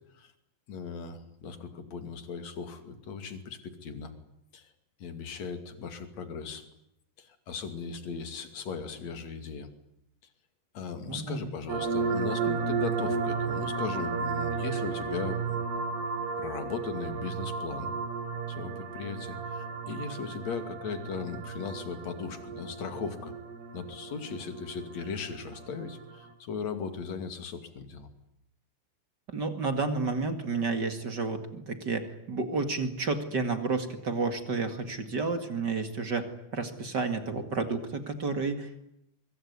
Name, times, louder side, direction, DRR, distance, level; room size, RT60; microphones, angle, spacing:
voice 1, 0.7-4.1 4.5-4.7 5.0-6.6 7.2-9.7 10.7-15.6 16.4-17.9 18.5-23.3 23.7-28.1, left 5 dB, 45° left, 8 dB, 3.5 m, -38 dB
voice 2, 11.0-11.5 29.3-36.3 36.5-38.8, right 4 dB, 35° right, 8 dB, 2.0 m, -31 dB
sound 1, 11.7-26.3, right 5 dB, 85° right, 4.7 m, -34 dB
24.0 x 23.5 x 9.7 m, 0.80 s
omnidirectional pair, 4.6 m